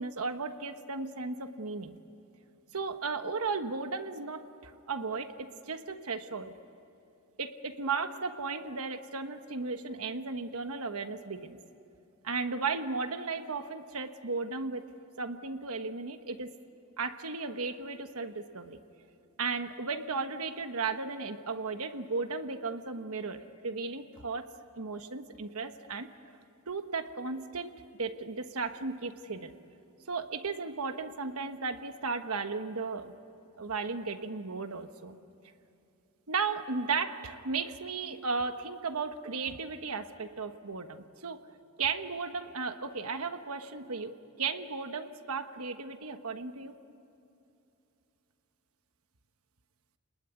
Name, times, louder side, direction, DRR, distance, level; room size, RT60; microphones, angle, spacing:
voice 1, 0.0-2.0 2.7-6.5 7.4-11.6 12.2-14.9 15.2-16.5 17.0-18.8 19.4-24.5 24.8-26.4 26.7-29.6 30.1-33.1 33.6-35.1 36.3-41.4 41.8-46.7, right 4 dB, 70° right, 8 dB, 1.3 m, -35 dB
29.0 x 20.5 x 9.6 m, 2.8 s
head